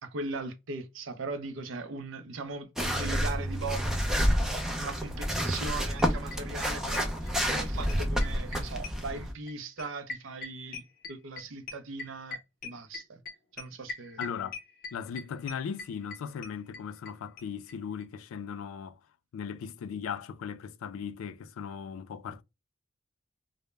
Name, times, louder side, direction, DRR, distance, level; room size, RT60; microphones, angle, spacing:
voice 1, 0.0-10.8 11.1-13.2 13.6-14.2, right 3 dB, 65° right, 0.5 m, -39 dB
sound 1, 2.8-9.3, equal, 5° right, 0.4 m, -29 dB
sound 2, 5.7-5.8 6.0-7.6 7.9-17.1 17.4-17.5 17.7-17.8 18.0-18.1, left 3 dB, 45° left, 0.6 m, -41 dB
voice 2, 14.2-14.6 14.9-19.0 19.3-22.4, left 7 dB, 85° left, 0.3 m, -38 dB
2.0 x 2.0 x 3.1 m
head